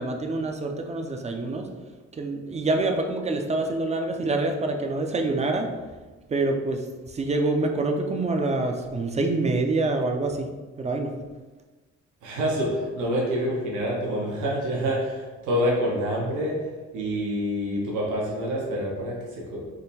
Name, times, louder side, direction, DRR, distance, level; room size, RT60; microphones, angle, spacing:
voice 1, 0.0-1.7 2.1-5.7 6.3-10.5 10.8-11.1, right 2 dB, 20° right, 3 dB, 0.5 m, -26 dB
voice 2, 12.2-16.6 16.9-19.7, equal, 80° right, -3 dB, 1.0 m, -27 dB
3.7 x 2.2 x 4.0 m, 1.3 s
cardioid pair, 90°, 30 cm